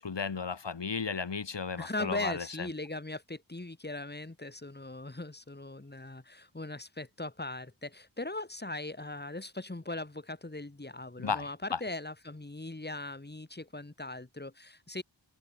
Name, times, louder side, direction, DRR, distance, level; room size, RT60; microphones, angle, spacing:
voice 1, 0.0-2.7 11.2-11.8, left 5 dB, 65° left, 2.7 m, -34 dB
voice 2, 1.8-15.0, left 2 dB, 20° left, 3.2 m, -39 dB
open air
wide cardioid pair, 80°, 46 cm